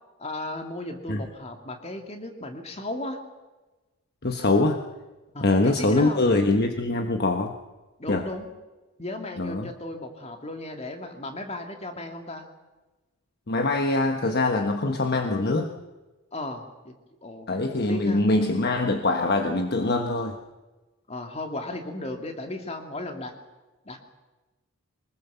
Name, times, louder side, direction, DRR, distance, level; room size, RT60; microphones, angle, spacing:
voice 1, 0.2-3.2 5.3-6.2 8.0-8.5 9.0-12.5 16.3-16.9 17.2-17.5 17.9-18.2 21.1-23.3 23.8-24.0, left 2 dB, 30° left, 5 dB, 2.6 m, -35 dB
voice 2, 4.2-4.8 5.4-7.5 8.1-8.2 9.4-9.7 13.5-15.7 17.5-20.4, left 2 dB, 45° left, 5 dB, 1.3 m, -23 dB
24.0 x 20.5 x 7.0 m, 1.2 s
head